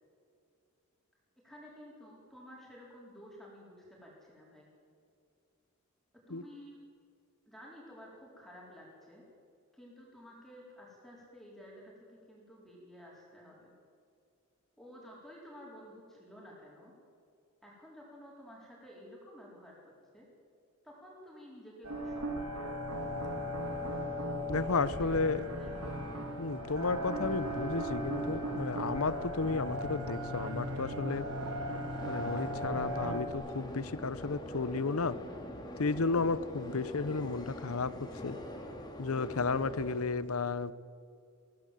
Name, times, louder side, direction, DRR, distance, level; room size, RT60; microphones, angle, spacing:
voice 1, 1.4-4.7 6.3-6.8 7.5-9.2 9.7-11.8 12.3-13.7 14.8-16.9 17.6-20.3 20.8-22.2 22.5-22.9 25.0-25.1 25.5-26.1, equal, ahead, -4 dB, 4.4 m, -52 dB
sound 1, 21.8-33.3, equal, 80° right, 2.3 m, -37 dB
sound 2, 22.9-40.0, left 1 dB, 20° left, 2.3 m, -45 dB
voice 2, 24.5-25.4 26.4-31.2 32.1-35.2 35.8-37.9 38.2-38.4 39.0-40.7, left 4 dB, 85° left, 16 dB, 0.8 m, -33 dB
22.5 x 16.0 x 7.7 m, 2.4 s
head